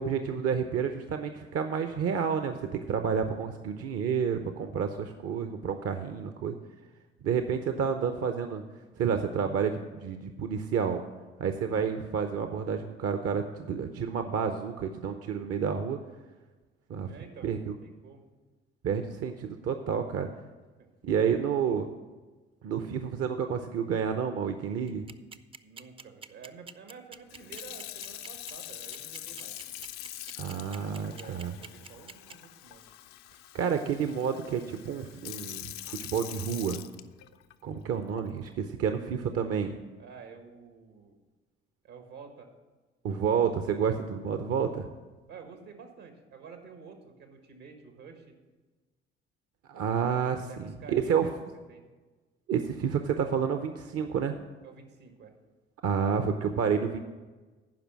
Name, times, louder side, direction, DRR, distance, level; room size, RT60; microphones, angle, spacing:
voice 1, 0.0-6.6 7.2-8.6 9.0-11.0 11.4-16.0 16.9-17.1 17.4-17.7 18.8-20.3 21.0-21.9 22.6-25.0 30.4-31.5 33.5-36.8 37.6-39.7 43.0-44.9 49.7-51.3 52.5-54.4 55.8-57.0, right 7 dB, 50° right, 8 dB, 0.7 m, -30 dB
voice 2, 17.0-18.2 20.8-20.9 25.6-29.6 30.9-32.8 40.0-41.1 41.8-42.5 45.3-48.3 49.8-51.4 51.7-51.8 54.6-55.4, right 5 dB, 75° right, 5 dB, 1.6 m, -50 dB
sound 1, 24.9-32.3, right 5 dB, 20° right, 0.4 m, -45 dB
Sink (filling or washing) / Fill (with liquid), 27.3-37.5 38.2-38.5, left 13 dB, 70° left, 0.5 m, -44 dB
11.0 x 5.0 x 7.4 m, 1.3 s
hypercardioid pair, 50°, 30 cm